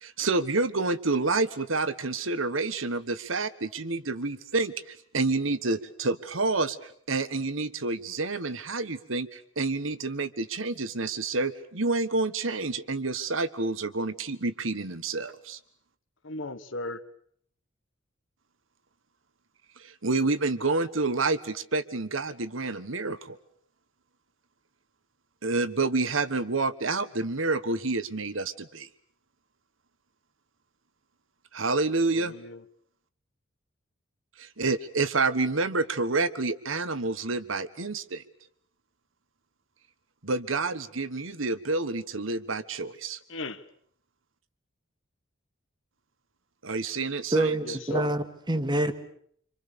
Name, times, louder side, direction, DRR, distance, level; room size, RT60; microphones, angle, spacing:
voice 1, 0.0-15.6 19.8-23.4 25.4-28.9 31.5-32.3 34.4-38.2 40.2-43.2 46.6-47.8, right 3 dB, 80° right, 1.4 m, -28 dB
voice 2, 16.2-17.0 32.1-32.6 43.3-43.6 47.6-48.1, left 2 dB, 70° left, 1.5 m, -36 dB
voice 3, 47.3-48.9, right 2 dB, 20° right, 1.7 m, -26 dB
27.0 x 26.5 x 6.9 m
head